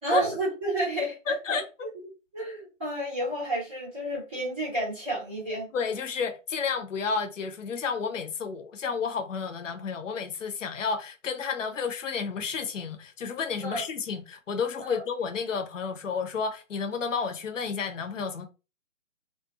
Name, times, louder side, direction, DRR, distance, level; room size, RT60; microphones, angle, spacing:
voice 1, 0.0-5.7 13.6-13.8 14.8-15.0, right 1 dB, 10° right, 0.6 m, -31 dB
voice 2, 1.3-1.9 5.7-18.5, left 5 dB, 70° left, 0.7 m, -31 dB
2.4 x 2.3 x 3.9 m
figure-of-eight pair, 145°, 39 cm